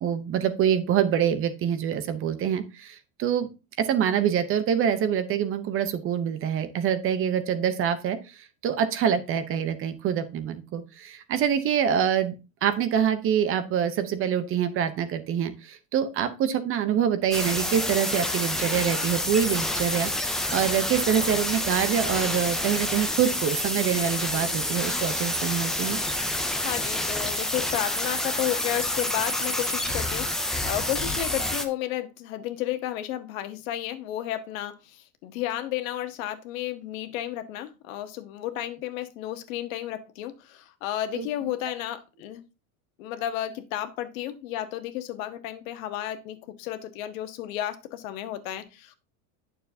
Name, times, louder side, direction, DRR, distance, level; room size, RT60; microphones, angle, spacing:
voice 1, 0.0-3.5 3.8-8.4 8.6-12.3 12.6-26.0 41.1-41.3, right 9 dB, 30° right, 11 dB, 0.7 m, -25 dB
sound 1, 17.3-31.7, left 1 dB, ahead, 0.3 m, -28 dB
voice 2, 26.6-42.4 43.0-48.9, left 12 dB, 70° left, 9 dB, 1.3 m, -32 dB
9.0 x 6.7 x 2.7 m, 0.29 s
supercardioid pair, 140°, 42 cm